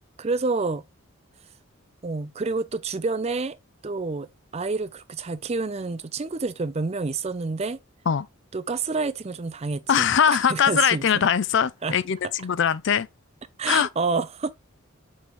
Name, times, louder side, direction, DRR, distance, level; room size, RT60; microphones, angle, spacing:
voice 1, 0.2-0.8 2.0-3.6 3.8-4.3 4.5-7.8 8.5-10.0 10.5-11.1 11.8-12.0 13.6-14.5, right 4 dB, 30° right, 0.5 m, -28 dB
voice 2, 9.9-13.1 13.7-13.9, left 8 dB, 55° left, 0.4 m, -21 dB
6.3 x 4.6 x 3.4 m
head